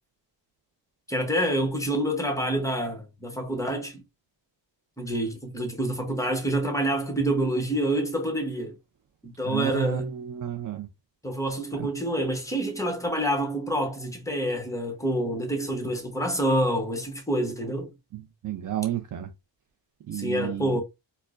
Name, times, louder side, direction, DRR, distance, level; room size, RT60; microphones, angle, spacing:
voice 1, 1.1-4.0 5.0-8.8 9.2-10.1 11.2-17.9 20.1-20.8, right 1 dB, 5° left, 0.9 m, -27 dB
voice 2, 9.4-10.9 11.7-11.9 18.1-19.3 20.1-20.8, right 11 dB, 45° right, 0.4 m, -32 dB
4.4 x 2.1 x 2.4 m
wide cardioid pair, 135°, 45 cm